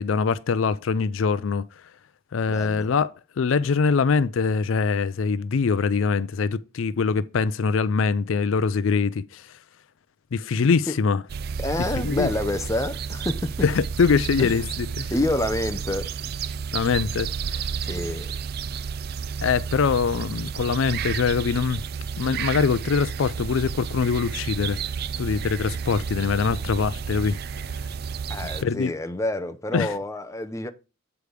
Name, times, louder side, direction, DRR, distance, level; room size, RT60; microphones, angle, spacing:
voice 1, 0.0-1.7 2.3-9.4 10.3-11.2 12.0-12.3 13.6-15.1 16.7-17.6 19.4-21.8 22.2-24.8 25.2-27.4 28.6-28.9 29.7-30.0, left 5 dB, 70° left, 0.4 m, -23 dB
voice 2, 2.5-2.9 10.9-11.0 11.6-13.5 14.4-14.5 15.1-16.1 17.8-18.3 28.3-30.7, left 1 dB, 15° left, 0.6 m, -28 dB
sound 1, 11.3-28.6, right 6 dB, 50° right, 0.4 m, -31 dB
8.0 x 5.0 x 5.0 m
head